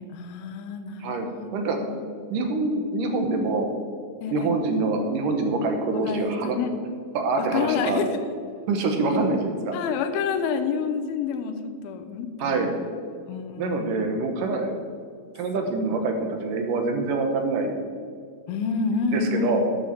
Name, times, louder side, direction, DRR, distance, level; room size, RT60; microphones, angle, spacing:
voice 1, 0.0-2.0 4.2-4.5 6.0-6.7 7.4-8.2 9.7-12.7 13.3-14.1 18.5-19.6, left 5 dB, 90° left, 9 dB, 2.7 m, -29 dB
voice 2, 1.5-1.9 2.3-3.7 4.3-6.6 7.1-8.0 8.7-9.8 12.4-12.7 13.6-14.8 15.3-17.8 19.1-19.6, right 3 dB, 70° right, 4 dB, 2.5 m, -25 dB
13.0 x 8.9 x 4.4 m, 2.2 s
omnidirectional pair, 4.2 m